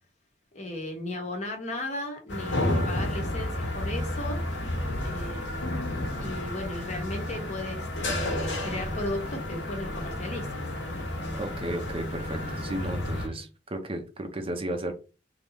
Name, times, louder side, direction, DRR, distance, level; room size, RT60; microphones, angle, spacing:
voice 1, 0.5-4.4 5.0-5.8 6.1-10.6 13.1-13.4, left 1 dB, 40° left, 3 dB, 1.2 m, -36 dB
sound 1, 2.3-13.3, left 1 dB, 80° left, 1.3 m, -31 dB
voice 2, 11.4-14.9, right 1 dB, 30° right, 6 dB, 0.7 m, -34 dB
3.4 x 2.9 x 4.1 m, 0.31 s
head